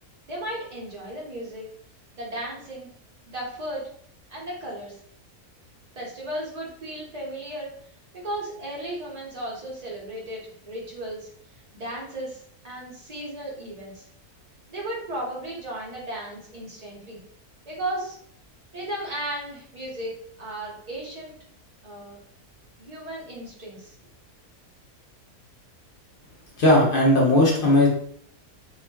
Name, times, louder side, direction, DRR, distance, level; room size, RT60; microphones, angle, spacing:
voice 1, 0.3-1.7 2.2-2.9 3.3-3.9 4.3-5.0 6.0-7.7 8.2-11.3 11.7-14.1 14.7-17.2 17.6-18.2 18.7-20.1 20.4-21.3 21.8-22.2 22.8-23.9, right 1 dB, 70° right, -4 dB, 0.3 m, -35 dB
voice 2, 26.6-27.9, left 1 dB, 55° left, -3 dB, 0.6 m, -17 dB
2.4 x 2.3 x 2.2 m, 0.63 s
omnidirectional pair, 1.6 m